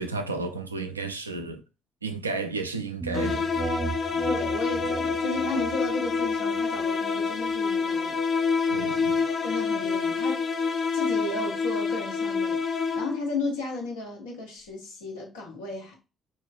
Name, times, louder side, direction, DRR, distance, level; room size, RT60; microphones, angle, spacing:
voice 1, 0.0-1.6 2.0-3.5 8.7-9.3, right 3 dB, 90° right, 0.3 m, -32 dB
sound 1, 3.0-12.6, right 4 dB, 25° right, 0.5 m, -38 dB
sound 2, 3.1-13.4, left 5 dB, 45° left, 0.5 m, -27 dB
voice 2, 4.2-8.2 9.4-10.4 10.9-16.0, left 2 dB, 80° left, 1.0 m, -34 dB
4.2 x 3.1 x 2.4 m
figure-of-eight pair, 45°, 0 cm